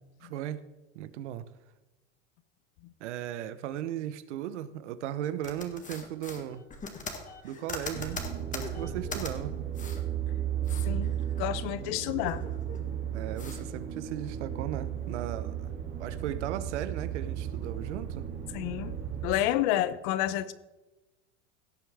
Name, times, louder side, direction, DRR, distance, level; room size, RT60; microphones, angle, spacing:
voice 1, 0.2-0.6 0.9-1.4 3.0-6.6 7.4-9.7 13.1-15.7 16.0-18.3, right 11 dB, 80° right, 0.9 m, -37 dB
sound 1, 5.4-9.3 9.7-10.0 10.4-11.7 12.0-12.9 13.4-13.6, left 4 dB, 20° left, 1.7 m, -41 dB
sound 2, 7.9-19.3, right 10 dB, 35° right, 2.5 m, -35 dB
voice 2, 10.9-12.4 18.5-20.5, left 13 dB, 60° left, 0.8 m, -30 dB
17.0 x 7.1 x 3.6 m
supercardioid pair, 115°, 34 cm